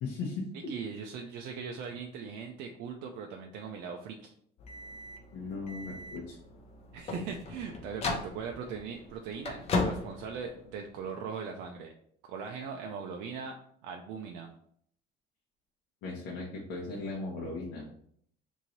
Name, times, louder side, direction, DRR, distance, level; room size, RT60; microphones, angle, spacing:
voice 1, 0.0-0.7 5.3-6.4 16.0-17.8, left 3 dB, 85° left, -3 dB, 0.8 m, -37 dB
voice 2, 0.7-4.3 6.9-11.9 12.2-13.6 13.8-14.5, right 6 dB, 80° right, 2 dB, 0.4 m, -40 dB
sound 1, 4.6-11.1, left 3 dB, 35° left, 0.5 m, -37 dB
3.0 x 2.7 x 3.9 m, 0.65 s
cardioid pair, 155°, 18 cm